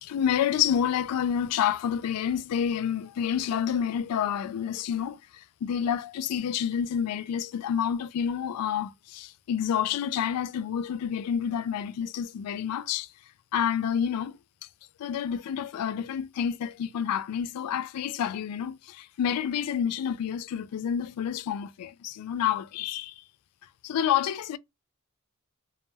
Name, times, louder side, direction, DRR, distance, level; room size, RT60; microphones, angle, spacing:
voice 1, 0.0-13.1 13.5-14.4 15.0-23.2 23.8-24.6, left 8 dB, 85° left, 0.3 m, -29 dB
2.2 x 2.1 x 3.3 m
head